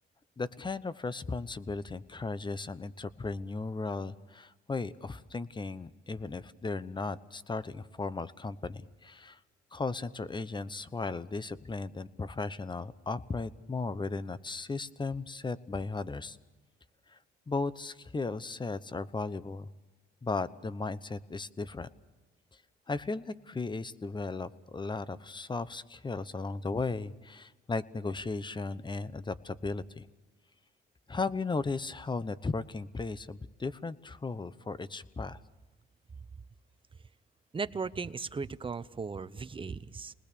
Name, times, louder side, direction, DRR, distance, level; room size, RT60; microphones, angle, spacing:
voice 1, 0.4-9.4 9.7-16.4 17.1-17.2 17.5-19.7 20.2-21.9 22.9-30.1 31.1-35.4, left 3 dB, 25° left, 15 dB, 1.0 m, -36 dB
voice 2, 37.5-40.1, right 5 dB, 25° right, 14 dB, 0.8 m, -37 dB
28.0 x 20.0 x 6.9 m, 1.1 s
cardioid pair, 90°, 20 cm